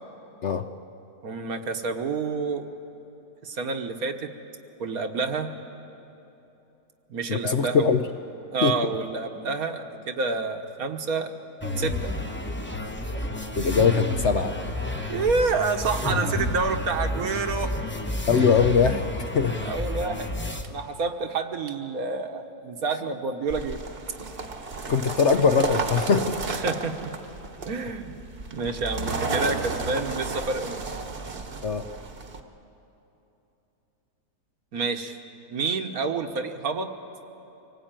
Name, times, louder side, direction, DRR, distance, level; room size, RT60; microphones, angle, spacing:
voice 1, 1.2-2.6 3.4-4.3 4.8-5.5 7.1-7.9 8.5-11.3 11.8-12.1 15.1-17.9 19.6-20.3 20.6-23.8 26.5-27.1 27.6-28.2 28.5-30.8 34.7-35.2 35.5-36.9, right 4 dB, 65° right, 6 dB, 1.6 m, -28 dB
voice 2, 7.3-8.0 8.6-8.8 13.5-14.5 18.3-19.1 19.3-19.6 24.9-26.4 31.6-31.9, left 6 dB, 55° left, 8 dB, 0.8 m, -21 dB
sound 1, 11.6-20.6, left 2 dB, 10° left, 1.0 m, -30 dB
sound 2, 23.5-32.4, right 3 dB, 40° right, 1.3 m, -33 dB
25.0 x 18.0 x 8.9 m, 3.0 s
omnidirectional pair, 1.7 m